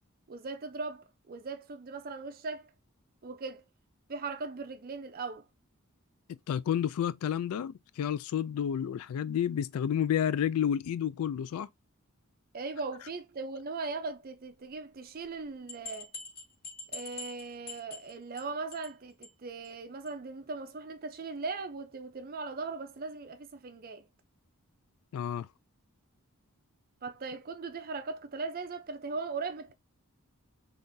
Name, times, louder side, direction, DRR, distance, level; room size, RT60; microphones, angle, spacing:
voice 1, 0.3-2.7 3.2-3.6 4.1-5.5 12.5-16.1 16.9-24.1 27.0-29.7, right 4 dB, 40° right, 0.5 m, -39 dB
voice 2, 6.3-11.7 25.1-25.5, left 9 dB, 75° left, 0.3 m, -30 dB
sound 1, 15.2-15.3 15.7-18.4 18.7-19.0 19.2-19.3 19.6-19.7 20.1-20.2, left 4 dB, 45° left, 1.7 m, -44 dB
3.7 x 2.5 x 2.6 m
head